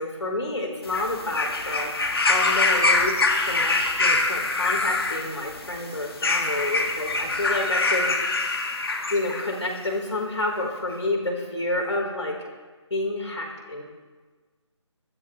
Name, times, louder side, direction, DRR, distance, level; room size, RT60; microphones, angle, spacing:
voice 1, 0.0-1.9 2.3-8.1 9.1-12.4 12.9-13.8, left 2 dB, 70° left, 0 dB, 4.6 m, -29 dB
sound 1, 0.8-9.5 10.4-10.5, left 3 dB, 50° left, 1.9 m, -24 dB
23.5 x 13.0 x 3.4 m, 1.4 s
figure-of-eight pair, 155°, 16 cm